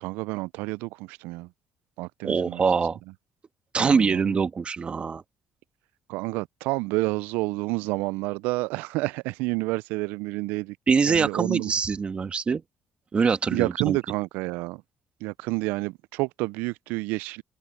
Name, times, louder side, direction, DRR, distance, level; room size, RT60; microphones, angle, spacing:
voice 1, 0.0-1.5 2.0-2.6 3.8-4.4 6.1-10.8 11.1-11.7 13.5-14.8 15.2-17.4, right 22 dB, 85° right, 0.3 m, -29 dB
voice 2, 2.2-3.0 3.7-5.2 10.9-12.6 13.1-14.0, right 5 dB, 40° right, 1.4 m, -24 dB
supercardioid pair, 75°, 3 cm